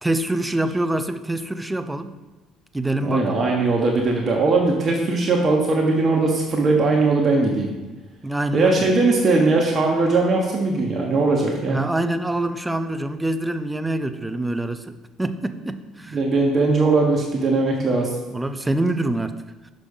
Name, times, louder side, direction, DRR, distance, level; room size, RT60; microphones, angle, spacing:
voice 1, 0.0-2.1 2.7-3.3 8.2-8.8 11.7-16.2 18.3-19.4, right 1 dB, 10° right, 10 dB, 0.6 m, -25 dB
voice 2, 3.0-7.7 8.5-11.8 16.1-18.2, right 3 dB, 40° right, -1 dB, 1.3 m, -19 dB
6.4 x 5.3 x 5.4 m, 1.2 s
supercardioid pair, 75°, 0 cm